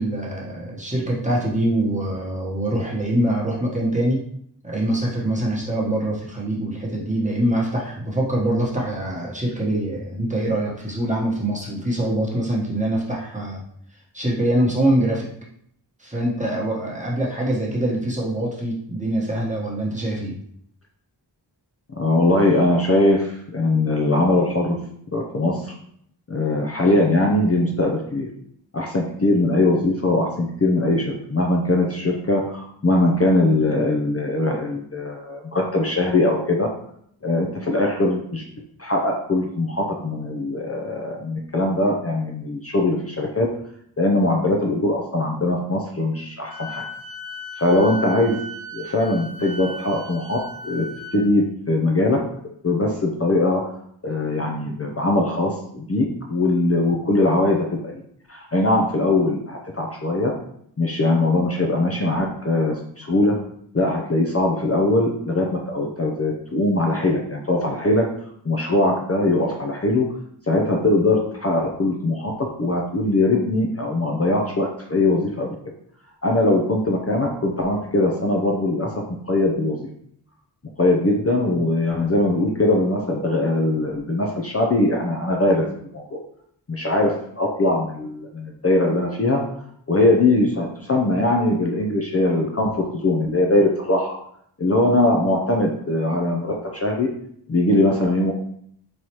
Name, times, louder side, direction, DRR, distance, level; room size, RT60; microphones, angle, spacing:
voice 1, 0.0-4.2 4.6-13.6 14.1-15.3 16.0-20.3, right 1 dB, 15° right, -4 dB, 1.1 m, -24 dB
voice 2, 22.0-24.8 25.1-25.7 26.3-28.3 28.7-36.7 37.2-38.4 38.8-43.5 44.0-46.8 47.6-48.4 48.7-50.4 50.6-50.8 51.1-52.2 52.6-53.6 54.0-58.0 58.3-60.3 60.8-63.3 63.7-68.0 68.4-70.1 70.5-72.3 72.6-75.5 76.2-79.9 80.8-85.7 85.9-86.2 86.7-89.4 89.9-94.1 94.6-97.1 97.5-98.3, left 2 dB, 35° left, 0 dB, 0.6 m, -21 dB
Wind instrument woodwind instrument, 46.4-51.2, equal, 55° left, 1.0 m, -36 dB
4.0 x 3.2 x 2.9 m, 0.68 s
wide cardioid pair, 50°, 43 cm